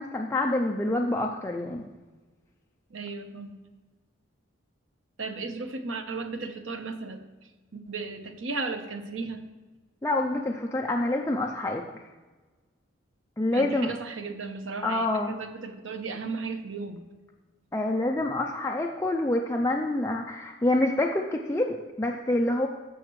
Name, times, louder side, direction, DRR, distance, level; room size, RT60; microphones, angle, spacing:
voice 1, 0.0-1.8 10.0-11.8 13.4-13.9 14.8-15.4 17.7-22.7, left 1 dB, 15° left, 1 dB, 0.4 m, -27 dB
voice 2, 2.9-3.6 5.2-7.2 7.7-9.4 13.5-17.0, right 3 dB, 70° right, 7 dB, 0.9 m, -35 dB
15.0 x 5.8 x 3.1 m, 1.3 s
head